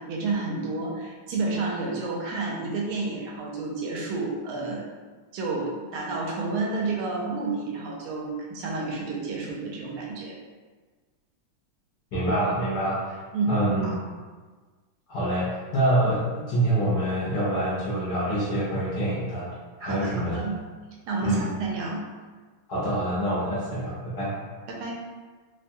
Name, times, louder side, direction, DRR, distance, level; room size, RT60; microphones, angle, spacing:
voice 1, 0.0-4.8 5.3-10.4 13.3-13.9 19.8-20.6 21.1-22.0 24.7-25.0, right 3 dB, 80° right, -2 dB, 1.4 m, -30 dB
voice 2, 12.1-13.2 13.5-13.9 15.1-19.5 19.8-20.3 21.2-21.4 22.7-24.3, right 1 dB, 65° left, -8 dB, 1.1 m, -26 dB
3.5 x 2.2 x 2.6 m, 1.4 s
omnidirectional pair, 2.3 m